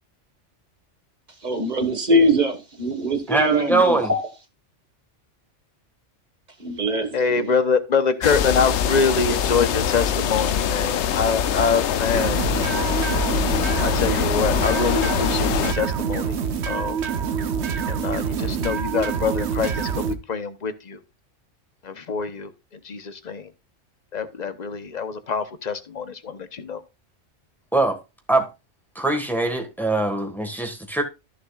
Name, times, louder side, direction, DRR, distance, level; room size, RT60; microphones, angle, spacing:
voice 1, 1.4-4.2 6.6-7.5, right 1 dB, 35° right, 1.7 m, -22 dB
voice 2, 3.3-4.1 27.7-28.0 28.3-28.5 28.9-31.0, right 2 dB, ahead, 1.5 m, -22 dB
voice 3, 7.1-12.5 13.8-16.3 16.6-17.0 17.8-21.0 21.8-22.5 22.8-23.5 24.1-26.8, left 5 dB, 40° left, 1.0 m, -25 dB
sound 1, 8.2-15.7, left 8 dB, 70° left, 0.9 m, -23 dB
sound 2, 12.1-20.1, right 6 dB, 65° right, 1.2 m, -26 dB
14.0 x 6.9 x 2.4 m
omnidirectional pair, 1.2 m